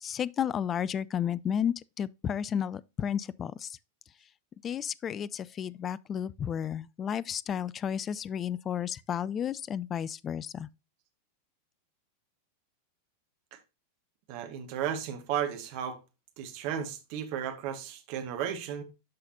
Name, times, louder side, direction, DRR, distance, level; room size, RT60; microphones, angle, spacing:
voice 1, 0.0-3.8 4.6-10.7, left 8 dB, 25° left, 0.3 m, -32 dB
voice 2, 14.3-16.0 16.4-18.8, right 9 dB, 45° right, 1.5 m, -34 dB
12.0 x 4.0 x 2.6 m
figure-of-eight pair, 90°, 0 cm